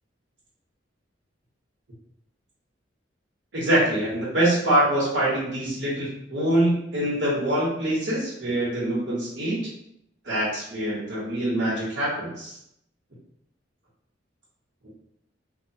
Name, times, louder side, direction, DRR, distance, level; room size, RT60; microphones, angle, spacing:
voice 1, 3.5-9.6 10.2-12.6, right 1 dB, 70° right, -8 dB, 1.1 m, -24 dB
2.8 x 2.1 x 2.7 m, 0.76 s
head